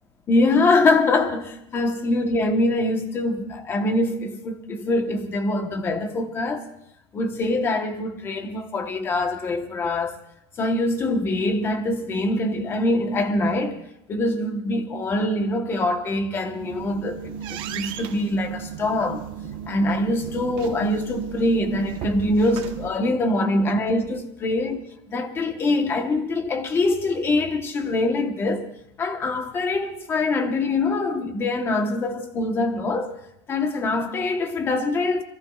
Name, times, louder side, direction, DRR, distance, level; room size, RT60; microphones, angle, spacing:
voice 1, 0.3-6.7 7.1-10.2 10.6-13.8 14.1-19.3 19.7-24.8 25.1-28.7 29.0-33.2 33.5-35.2, left 2 dB, 15° left, 1.1 m, -24 dB
sound 1, 16.4-22.9, right 7 dB, 35° right, 1.1 m, -35 dB
26.5 x 22.5 x 2.4 m
supercardioid pair, 180°, 15 cm